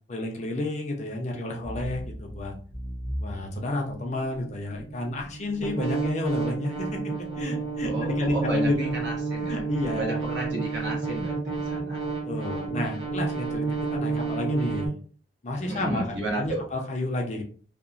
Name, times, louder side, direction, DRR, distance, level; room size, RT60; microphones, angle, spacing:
voice 1, 0.1-2.5 3.2-7.0 7.4-8.9 9.5-10.2 12.3-14.9 15.4-17.4, left 2 dB, 40° left, 1 dB, 0.5 m, -31 dB
sound 1, 1.6-14.9, right 4 dB, 25° right, 0.8 m, -31 dB
voice 2, 7.8-9.6 9.9-12.0 15.6-16.6, right 2 dB, 70° right, -2 dB, 1.0 m, -33 dB
2.8 x 2.0 x 2.5 m, 0.42 s
head